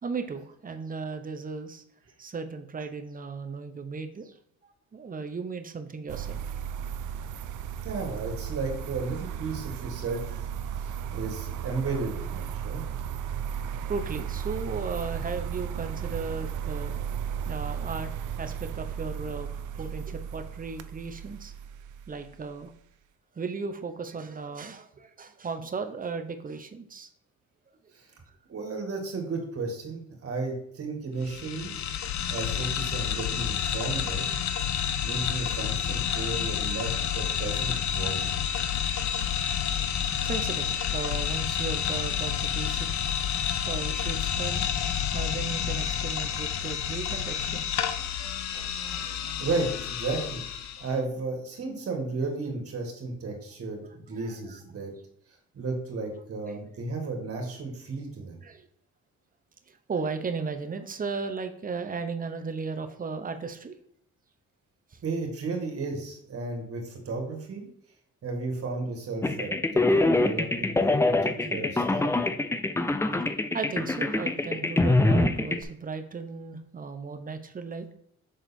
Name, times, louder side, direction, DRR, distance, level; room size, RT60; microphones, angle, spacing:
voice 1, 0.0-1.8 2.2-4.3 4.6-6.4 10.1-10.3 13.6-16.9 17.5-18.1 18.4-19.5 19.7-21.5 22.1-22.7 23.4-27.1 39.8-44.7 45.1-47.7 48.2-49.4 54.1-54.6 56.5-56.6 58.4-58.7 59.7-63.7 64.9-65.0 73.5-77.9, right 4 dB, 30° right, 7 dB, 0.8 m, -36 dB
sound 1, 6.1-22.5, right 8 dB, 80° right, 0.5 m, -35 dB
voice 2, 7.8-10.2 10.8-12.9 27.9-28.1 28.5-31.7 32.0-34.2 35.0-38.3 48.9-49.1 49.4-54.9 55.5-58.4 65.0-67.7 68.2-72.1, right 3 dB, 50° right, 2 dB, 2.1 m, -34 dB
sound 2, 31.2-50.9, left 9 dB, 65° left, 0.7 m, -29 dB
sound 3, 69.2-75.6, left 2 dB, 10° left, 0.4 m, -24 dB
6.4 x 3.9 x 4.3 m, 0.68 s
cardioid pair, 90°, 30 cm